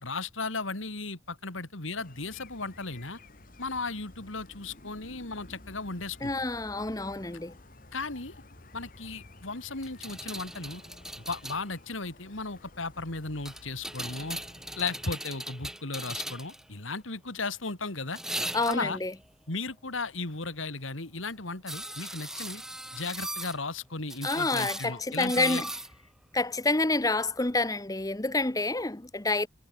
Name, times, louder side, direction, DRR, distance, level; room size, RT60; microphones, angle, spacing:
voice 1, 0.0-3.2 3.6-6.3 7.9-8.3 8.7-10.8 11.3-14.4 14.8-18.2 18.7-19.0 19.5-22.6 22.9-25.6, left 3 dB, 85° left, 3.1 m, -35 dB
sound 1, 1.9-15.1, left 2 dB, 45° left, 2.1 m, -52 dB
voice 2, 6.2-7.5 18.5-19.1 24.2-25.7 26.3-29.5, left 2 dB, 20° left, 0.9 m, -28 dB
sound 2, 9.8-11.6 13.5-16.6 18.1-19.0 21.7-23.6 24.1-25.9 27.5-27.6, right 1 dB, 5° right, 0.4 m, -38 dB
head